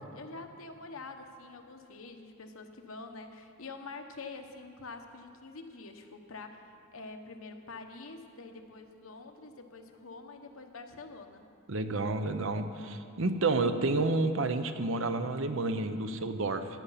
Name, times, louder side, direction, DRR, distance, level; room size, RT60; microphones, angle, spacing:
voice 1, 0.1-11.4, left 3 dB, 90° left, 5 dB, 1.1 m, -46 dB
voice 2, 11.7-16.7, right 3 dB, 70° right, 9 dB, 0.8 m, -30 dB
15.0 x 9.8 x 5.7 m, 2.4 s
head